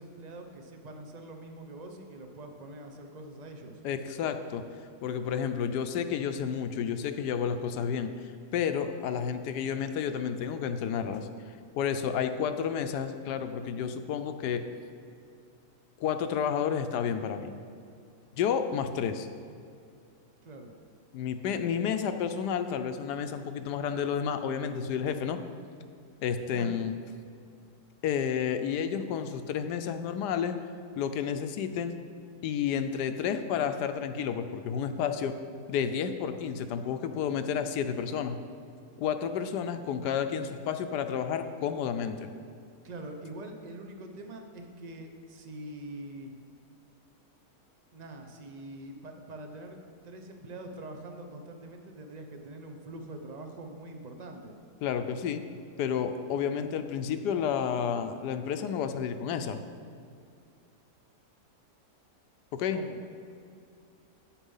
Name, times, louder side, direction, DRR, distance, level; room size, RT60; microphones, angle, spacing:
voice 1, 0.0-3.8 20.4-20.7 26.5-26.7 42.8-46.3 47.9-49.8 50.0-54.6 62.7-63.0, right 1 dB, 50° right, 4 dB, 0.5 m, -44 dB
voice 2, 3.8-4.6 5.0-8.1 8.5-11.3 11.8-14.6 16.0-17.5 18.4-19.3 21.1-25.4 26.2-26.9 28.0-30.6 31.0-31.9 32.4-35.3 35.7-38.4 39.0-42.3 54.8-55.4 55.8-59.6 62.5-62.8, left 7 dB, 75° left, 9 dB, 1.1 m, -31 dB
8.6 x 7.2 x 5.5 m, 2.4 s
omnidirectional pair, 1.9 m